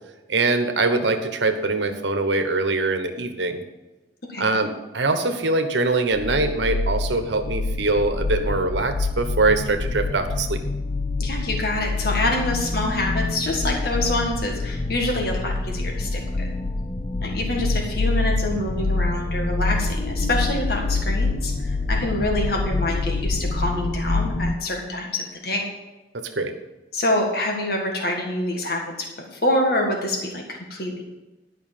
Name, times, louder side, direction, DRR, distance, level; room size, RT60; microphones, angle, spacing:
voice 1, 0.3-3.6 4.4-10.6 26.1-26.5, right 3 dB, 90° right, 7 dB, 1.2 m, -23 dB
sound 1, 6.1-24.5, left 3 dB, 30° left, 0.4 m, -26 dB
voice 2, 11.2-16.5 17.2-25.7 26.9-29.1 29.3-30.4 30.7-31.0, left 1 dB, 60° left, 1 dB, 1.7 m, -26 dB
11.5 x 5.8 x 7.3 m, 1.1 s
head